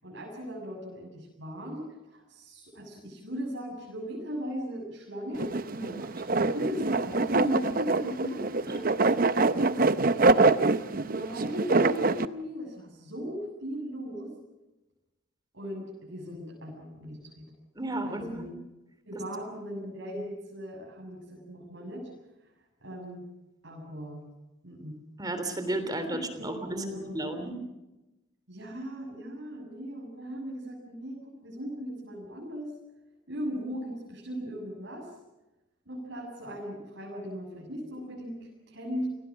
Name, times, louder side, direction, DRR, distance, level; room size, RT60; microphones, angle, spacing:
voice 1, 0.0-5.5 6.3-9.3 9.7-14.3 15.5-17.5 18.0-18.5 19.0-22.1 22.8-23.3 23.6-24.3 24.6-25.0 26.1-27.6 28.5-32.7 33.3-35.1 35.9-39.1, equal, 65° right, -3 dB, 7.4 m, -38 dB
sound 1, 5.4-12.2, right 3 dB, 45° right, 0.7 m, -25 dB
voice 2, 5.7-6.1 8.7-8.8 17.7-18.5 25.2-27.5, right 1 dB, 20° right, 9 dB, 3.2 m, -34 dB
28.5 x 19.0 x 6.2 m, 1.0 s
head